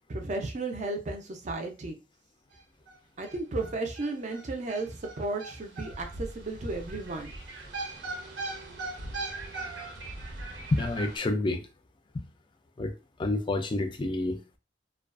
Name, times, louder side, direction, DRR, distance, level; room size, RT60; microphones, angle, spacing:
voice 1, 0.1-2.0 3.2-7.4, right 2 dB, 40° right, 0.5 m, -34 dB
sound 1, 2.5-2.6 2.9-3.0 3.2-11.2, right 2 dB, 90° right, 0.8 m, -39 dB
voice 2, 10.7-11.7 12.1-12.2 12.8-12.9 13.2-14.4, left 2 dB, 25° left, 0.4 m, -28 dB
2.4 x 2.2 x 2.4 m
head